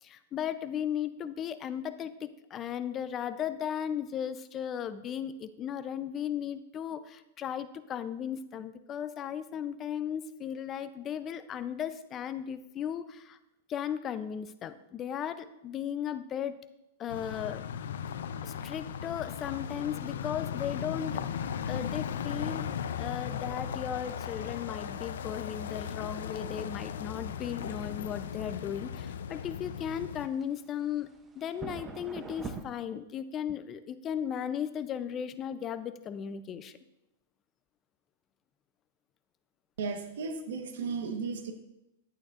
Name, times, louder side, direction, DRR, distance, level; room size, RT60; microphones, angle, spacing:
voice 1, 0.0-13.4 13.7-16.6 17.0-17.7 18.4-21.2 21.7-31.1 31.4-36.8, left 9 dB, 25° left, 12 dB, 0.5 m, -36 dB
sound 1, 17.1-30.3, left 8 dB, 80° left, 0.5 m, -37 dB
sound 2, 23.4-32.6, right 4 dB, 15° right, 0.7 m, -48 dB
voice 2, 39.8-41.5, right 5 dB, 75° right, 5 dB, 1.2 m, -35 dB
11.0 x 8.9 x 2.5 m, 0.91 s
hypercardioid pair, 140°, 0 cm